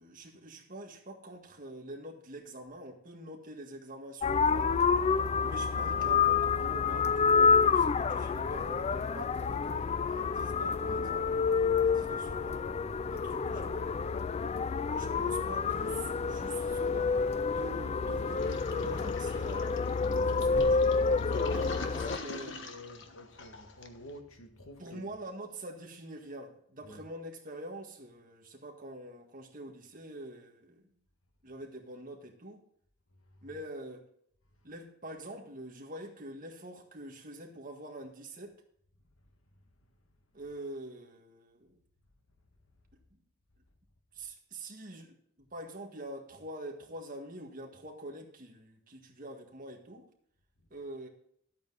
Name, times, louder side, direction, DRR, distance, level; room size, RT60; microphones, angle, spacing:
voice 1, 0.0-4.8 5.4-11.4 11.8-12.7 13.1-13.8 14.8-17.2 17.5-21.7 22.2-22.6 24.8-30.9 31.4-32.6 33.4-34.1 34.6-38.6 40.3-41.7 43.1-43.2 44.1-50.1 50.7-51.1, right 1 dB, 40° right, 1.7 m, -45 dB
sound 1, 4.2-22.2, left 5 dB, 30° left, 0.3 m, -28 dB
voice 2, 11.7-12.1 21.3-25.2 26.8-27.1 33.3-33.6 40.1-40.2, equal, 75° left, 1.8 m, -48 dB
Toilet flush, 18.4-24.1, left 3 dB, 60° left, 1.2 m, -45 dB
13.0 x 8.6 x 4.1 m
head